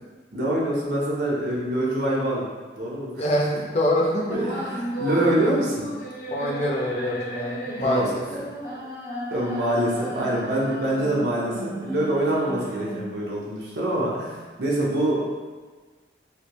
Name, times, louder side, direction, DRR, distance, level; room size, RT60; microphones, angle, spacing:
voice 1, 0.3-2.5 2.8-3.6 4.3-5.9 7.8-8.4 9.3-15.2, right 1 dB, 65° right, -5 dB, 0.7 m, -25 dB
voice 2, 3.2-4.4 6.3-8.2, left 1 dB, 35° left, -2 dB, 0.4 m, -25 dB
sound 1, 4.2-13.2, equal, 55° left, 1.5 m, -34 dB
3.3 x 2.6 x 2.9 m, 1.4 s
head